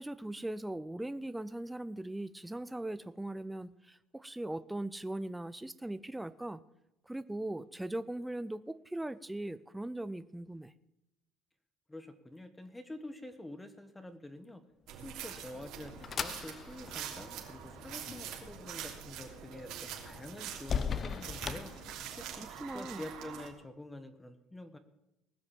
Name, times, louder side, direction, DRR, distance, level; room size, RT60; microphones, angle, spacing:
voice 1, 0.0-6.6 7.1-10.7 22.4-23.0, right 1 dB, 5° right, 14 dB, 0.5 m, -39 dB
voice 2, 11.9-14.6 15.0-24.8, left 1 dB, 10° left, 10 dB, 1.2 m, -47 dB
sound 1, 14.9-23.5, right 9 dB, 70° right, 3.1 m, -45 dB
sound 2, 15.1-22.5, left 6 dB, 35° left, 0.8 m, -41 dB
19.5 x 6.5 x 7.3 m, 0.91 s
supercardioid pair, 110°, 0 cm